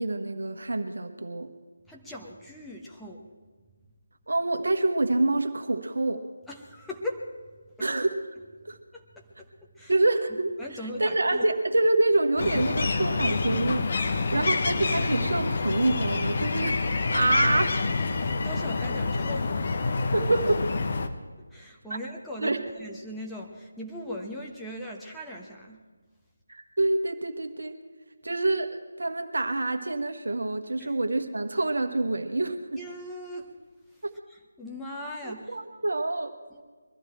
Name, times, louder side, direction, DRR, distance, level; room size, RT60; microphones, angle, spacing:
voice 1, 0.0-1.5 4.3-6.2 7.8-8.2 8.6-8.8 9.9-10.5 11.0-16.8 17.1-17.8 20.1-20.7 21.9-22.0 22.4-22.6 26.5-27.8 28.2-32.8 34.0-34.1 35.2-36.3, right 2 dB, 60° right, 6 dB, 1.5 m, -26 dB
voice 2, 1.9-3.3 6.5-7.3 7.8-7.9 8.7-9.9 10.6-11.4 18.2-19.7 21.5-25.8 30.8-30.9 32.8-33.5 33.9-35.6 36.5-36.6, left 1 dB, 5° left, -3 dB, 1.1 m, -39 dB
sound 1, 12.4-21.1, left 3 dB, 40° left, 1.0 m, -27 dB
22.5 x 14.0 x 4.5 m, 1.4 s
figure-of-eight pair, 155°, 0 cm